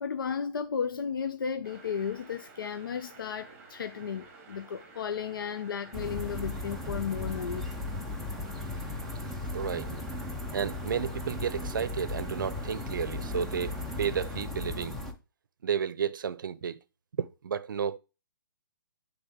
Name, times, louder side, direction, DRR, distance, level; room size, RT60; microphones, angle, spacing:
voice 1, 0.0-7.7, left 7 dB, 70° left, 0.6 m, -34 dB
sound 1, 1.6-14.4, right 4 dB, 15° right, 1.2 m, -52 dB
sound 2, 5.9-15.1, left 2 dB, ahead, 0.5 m, -36 dB
voice 2, 9.5-10.1 10.5-15.0 15.6-16.8 17.2-18.0, right 7 dB, 65° right, 0.6 m, -32 dB
9.0 x 3.5 x 3.5 m
hypercardioid pair, 165°, 12 cm